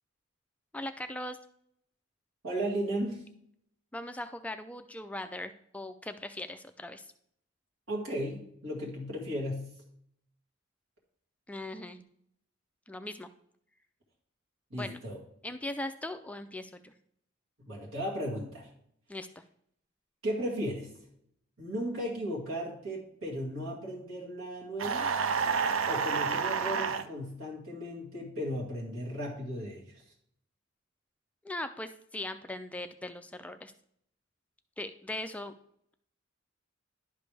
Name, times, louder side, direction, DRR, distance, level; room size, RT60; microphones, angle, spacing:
voice 1, 0.7-1.4 3.9-7.1 11.5-12.0 12.9-13.3 14.7-15.0 15.4-16.9 19.1-19.3 31.4-33.7 34.8-35.5, left 1 dB, 5° left, 9 dB, 0.3 m, -39 dB
voice 2, 2.4-3.3 7.9-9.7 14.7-15.2 17.6-18.7 20.2-20.9 21.6-25.1 25.9-30.0, equal, 85° right, -4 dB, 2.1 m, -35 dB
sound 1, 24.8-27.1, right 6 dB, 70° right, 0.5 m, -29 dB
11.0 x 5.1 x 3.4 m, 0.69 s
head